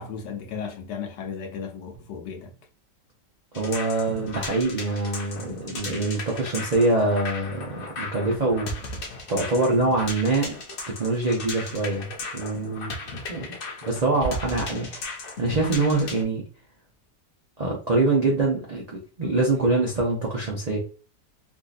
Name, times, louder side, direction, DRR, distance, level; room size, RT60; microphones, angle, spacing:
voice 1, 0.0-2.5, left 6 dB, 85° left, 1.4 m, -35 dB
sound 1, 3.5-16.2, left 2 dB, 55° left, 0.6 m, -36 dB
voice 2, 3.5-9.0 9.3-10.5 10.9-12.9 13.3-13.5 13.8-15.1 15.4-16.4 17.6-20.8, right 2 dB, 60° right, 0.4 m, -24 dB
3.6 x 2.6 x 2.4 m
omnidirectional pair, 1.8 m